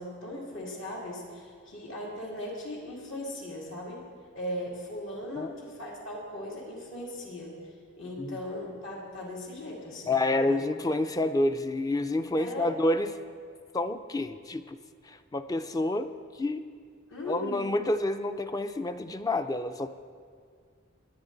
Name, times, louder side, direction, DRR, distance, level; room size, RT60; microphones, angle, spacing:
voice 1, 0.0-4.0 4.3-7.6 8.0-10.2 10.5-10.6 12.3-12.7 17.1-17.7, left 1 dB, 65° left, -3 dB, 2.6 m, -38 dB
voice 2, 10.1-13.2 13.7-14.8 15.0-16.6 17.3-19.9, left 2 dB, 20° left, 10 dB, 0.4 m, -28 dB
20.5 x 9.3 x 3.9 m, 2.1 s
head